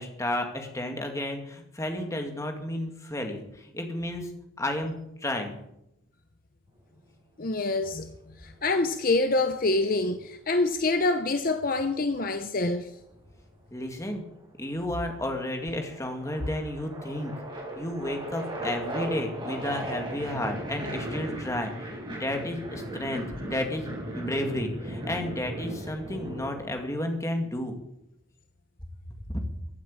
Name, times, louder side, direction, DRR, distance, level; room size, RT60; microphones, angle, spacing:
voice 1, 0.0-4.3 4.6-5.6 13.7-14.2 14.6-17.3 17.8-27.7 29.3-29.4, left 1 dB, 15° left, 2.1 m, -32 dB
voice 2, 7.4-8.1 8.4-12.9, left 2 dB, 45° left, 0.8 m, -26 dB
sound 1, 8.6-9.8 11.6-12.9 13.8-14.3 14.6-26.6, right 1 dB, 25° right, 5.0 m, -37 dB
15.5 x 9.3 x 8.6 m
head